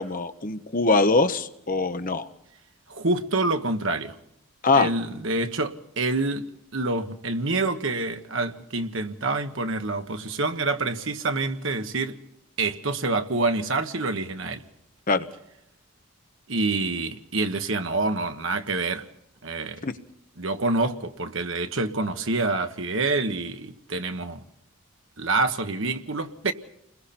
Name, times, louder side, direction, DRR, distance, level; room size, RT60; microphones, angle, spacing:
voice 1, 0.0-2.3 4.6-4.9 15.1-15.3 19.8-19.9, left 3 dB, 40° left, 1.1 m, -22 dB
voice 2, 2.9-4.2 4.7-6.4 6.7-12.2 12.6-14.6 16.5-19.0 19.4-19.9 20.4-24.4 25.2-26.5, right 3 dB, 60° right, 1.4 m, -27 dB
30.0 x 21.5 x 4.4 m
head